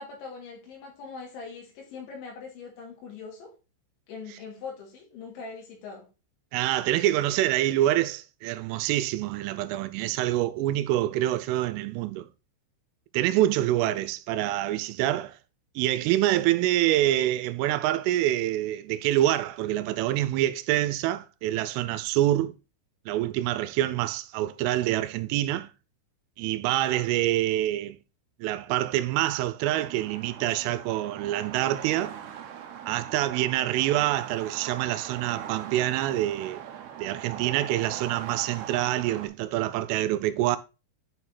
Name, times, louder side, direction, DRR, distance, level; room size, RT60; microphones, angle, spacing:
voice 1, 0.0-3.5 4.1-6.1 33.7-33.9, left 5 dB, 70° left, 4.9 m, -42 dB
voice 2, 6.5-12.3 13.1-15.4 15.8-22.5 23.1-25.7 26.4-28.0 28.4-32.2 32.9-36.6 37.0-40.6, right 14 dB, 90° right, 3.1 m, -26 dB
sound 1, 29.6-39.3, right 9 dB, 75° right, 2.4 m, -41 dB
9.2 x 4.4 x 4.1 m
omnidirectional pair, 5.6 m